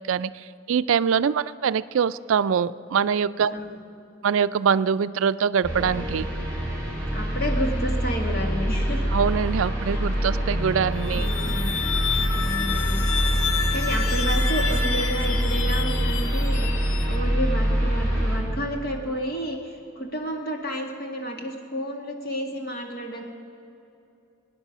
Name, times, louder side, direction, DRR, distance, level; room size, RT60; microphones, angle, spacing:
voice 1, 0.0-3.5 4.2-6.3 9.1-11.3, right 7 dB, 80° right, 15 dB, 0.4 m, -23 dB
voice 2, 3.5-3.8 7.1-9.1 9.9-10.0 11.0-12.0 12.3-13.1 13.7-16.7 17.1-23.2, equal, 50° left, 1 dB, 2.0 m, -31 dB
sound 1, 5.6-18.4, equal, 10° left, 3.9 m, -25 dB
sound 2, 10.9-17.6, left 7 dB, 80° left, 0.7 m, -30 dB
24.0 x 9.8 x 6.0 m, 2.8 s
head